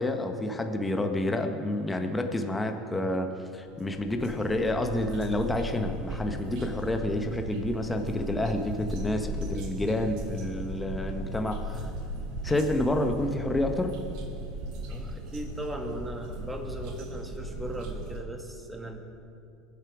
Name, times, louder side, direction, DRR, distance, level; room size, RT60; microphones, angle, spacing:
voice 1, 0.0-11.9 12.4-14.0, left 1 dB, 15° left, 5 dB, 1.3 m, -29 dB
sound 1, 3.7-18.2, right 1 dB, 65° right, 1.8 m, -37 dB
voice 2, 14.9-19.0, right 1 dB, 10° right, 2 dB, 2.3 m, -38 dB
22.0 x 7.5 x 4.9 m, 2.6 s
hypercardioid pair, 85°, 0 cm